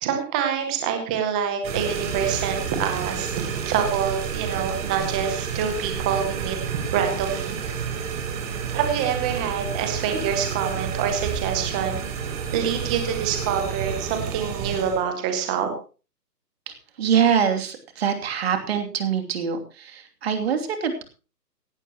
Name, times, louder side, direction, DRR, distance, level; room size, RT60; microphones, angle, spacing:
voice 1, 0.0-7.6 8.7-12.1 12.5-15.7, right 7 dB, 5° right, 5 dB, 0.7 m, -26 dB
sound 1, 1.6-15.0, right 7 dB, 20° right, 3.2 m, -30 dB
voice 2, 16.7-21.0, right 7 dB, 40° right, 5 dB, 2.8 m, -24 dB
16.5 x 15.5 x 3.0 m, 0.35 s
figure-of-eight pair, 150°, 50 cm